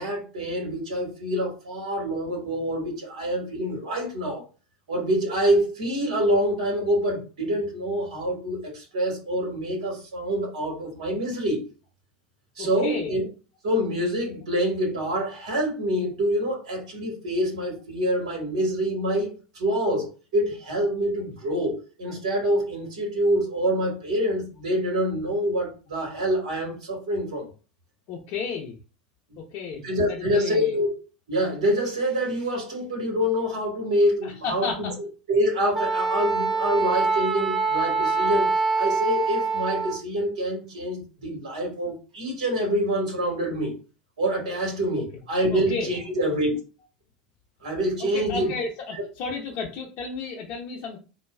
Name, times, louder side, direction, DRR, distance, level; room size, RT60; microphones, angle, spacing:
voice 1, 0.0-4.4 4.9-11.6 12.6-13.2 13.6-27.5 29.3-29.4 29.7-30.9 31.3-38.5 38.8-43.8 44.2-46.5 47.6-48.5, equal, 70° right, 1.6 m, -26 dB
voice 2, 12.6-13.1 28.1-28.8 29.5-29.8 30.1-30.8 34.2-34.9 45.5-45.9 48.0-51.0, left 4 dB, 50° left, 0.7 m, -32 dB
Wind instrument woodwind instrument, 35.7-40.0, right 4 dB, 5° right, 0.7 m, -24 dB
4.0 x 2.3 x 2.3 m
figure-of-eight pair, 80°, 4 cm